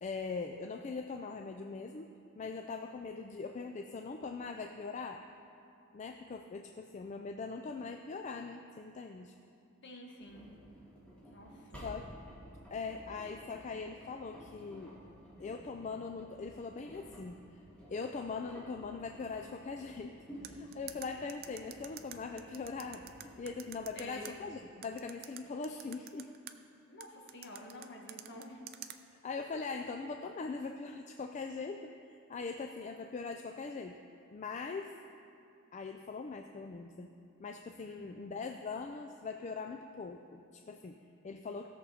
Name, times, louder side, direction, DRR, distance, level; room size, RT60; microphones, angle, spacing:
voice 1, 0.0-5.2 5.9-9.4 11.8-12.1 12.7-15.0 15.4-17.6 17.9-20.2 20.4-26.3 29.2-31.9 32.3-34.0 34.3-34.9 35.7-37.1 37.4-41.7, left 4 dB, 35° left, 5 dB, 0.4 m, -41 dB
voice 2, 9.8-10.5 11.3-11.8 23.9-24.4 26.9-28.6 37.8-38.2, left 1 dB, 55° left, 0 dB, 1.4 m, -49 dB
Engine, 10.2-24.4, equal, 5° left, 2.5 m, -53 dB
sound 1, 20.4-24.3 24.8-26.5 27.0-29.0, right 11 dB, 45° right, 0.5 m, -47 dB
16.5 x 6.8 x 4.3 m, 2.7 s
head